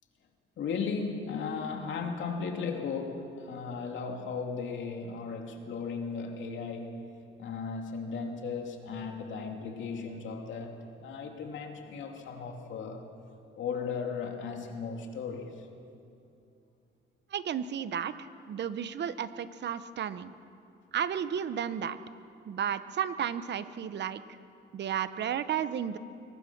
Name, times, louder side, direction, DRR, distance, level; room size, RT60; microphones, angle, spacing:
voice 1, 0.6-7.0 7.4-13.0 13.6-15.7, left 5 dB, 70° left, 3 dB, 2.8 m, -36 dB
voice 2, 17.3-20.3 20.9-22.0 22.5-24.2 24.7-26.0, right 8 dB, 60° right, 13 dB, 1.0 m, -33 dB
23.0 x 19.5 x 6.1 m, 2.6 s
cardioid pair, 90°, 20 cm